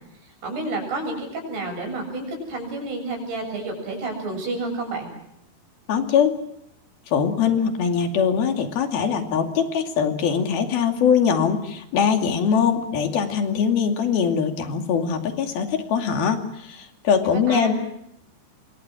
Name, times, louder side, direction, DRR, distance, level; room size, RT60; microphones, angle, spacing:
voice 1, 0.4-5.1 17.2-17.8, right 2 dB, 80° right, 3 dB, 9.5 m, -30 dB
voice 2, 5.9-6.3 7.1-17.7, left 7 dB, 70° left, 5 dB, 4.3 m, -22 dB
28.5 x 24.0 x 6.3 m, 0.78 s
omnidirectional pair, 4.6 m